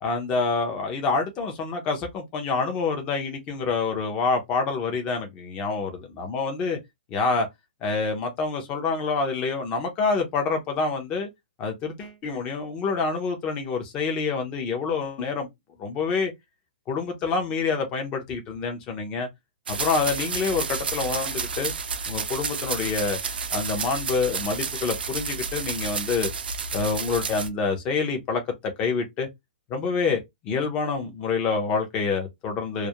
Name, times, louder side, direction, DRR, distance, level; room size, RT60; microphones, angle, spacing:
voice 1, 0.0-6.8 7.1-7.5 7.8-11.3 11.6-15.5 15.8-16.3 16.9-19.3 19.7-21.7 22.1-23.2 23.5-26.3 26.7-28.4 28.8-29.3 29.7-32.9, left 4 dB, 20° left, 0.5 m, -27 dB
sound 1, 19.7-27.5, right 5 dB, 85° right, 0.5 m, -30 dB
2.3 x 2.0 x 2.8 m
hypercardioid pair, 165°, 5 cm